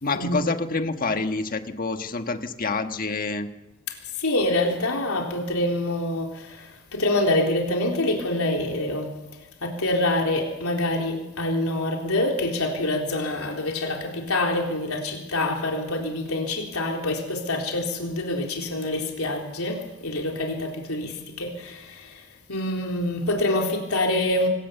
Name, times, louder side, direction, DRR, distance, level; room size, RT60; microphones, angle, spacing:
voice 1, 0.0-3.5, left 3 dB, 40° left, 7 dB, 1.5 m, -27 dB
voice 2, 4.2-9.2 9.6-22.2 22.5-24.5, left 1 dB, 90° left, 1 dB, 3.9 m, -26 dB
25.5 x 16.5 x 7.0 m, 1.0 s
head